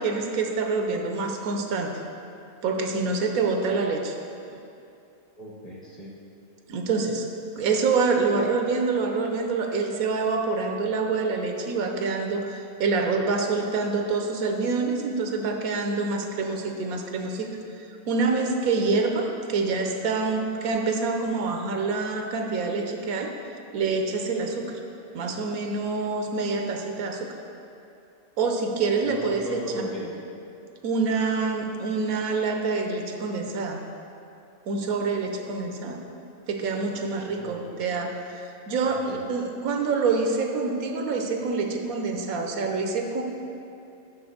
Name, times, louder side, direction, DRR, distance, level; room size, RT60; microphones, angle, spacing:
voice 1, 0.0-1.9 2.6-4.2 6.7-7.3 7.6-17.5 17.8-23.3 23.7-24.7 25.1-27.3 28.4-29.6 30.8-33.8 34.7-36.0 36.5-43.2, right 4 dB, 80° right, 3 dB, 1.2 m, -26 dB
voice 2, 5.4-6.1 29.0-30.1 37.2-37.9 38.8-39.3, equal, 30° left, -4 dB, 1.1 m, -37 dB
6.0 x 5.3 x 6.5 m, 2.7 s
omnidirectional pair, 1.5 m